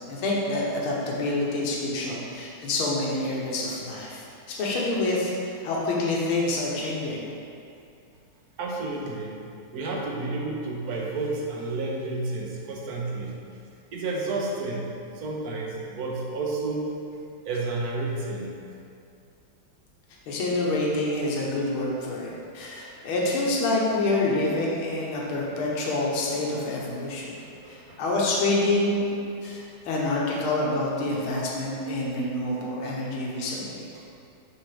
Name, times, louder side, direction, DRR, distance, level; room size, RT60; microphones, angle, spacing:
voice 1, 0.1-7.2 20.3-27.3 27.7-29.1 29.4-33.8, left 2 dB, 85° left, -4 dB, 1.8 m, -27 dB
voice 2, 8.6-9.4 9.7-13.4 13.9-14.9 15.1-16.9 17.4-18.6 26.2-26.3 27.4-28.0 29.4-29.6 31.3-31.7 32.1-32.2 32.5-33.0 33.4-33.6 33.9-34.0, right 3 dB, 55° right, -2 dB, 1.3 m, -31 dB
7.4 x 5.8 x 3.4 m, 2.5 s
omnidirectional pair, 2.3 m